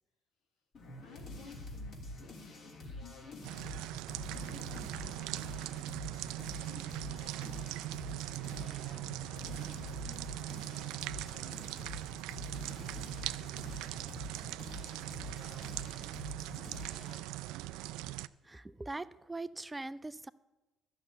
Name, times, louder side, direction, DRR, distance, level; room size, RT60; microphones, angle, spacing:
sound 1, 0.7-17.3, left 1 dB, 55° left, 3.1 m, -46 dB
voice 1, 0.9-3.7 4.3-6.0 6.6-8.2 8.5-8.8 9.3-11.6 12.4-13.4 13.6-15.5, left 5 dB, 85° left, 3 dB, 2.2 m, -57 dB
sound 2, 3.4-18.3, right 16 dB, 85° right, 0.3 m, -41 dB
voice 2, 18.5-20.3, right 2 dB, 15° right, 16 dB, 0.4 m, -41 dB
11.5 x 6.9 x 8.9 m, 1.2 s
supercardioid pair, 75°, 0 cm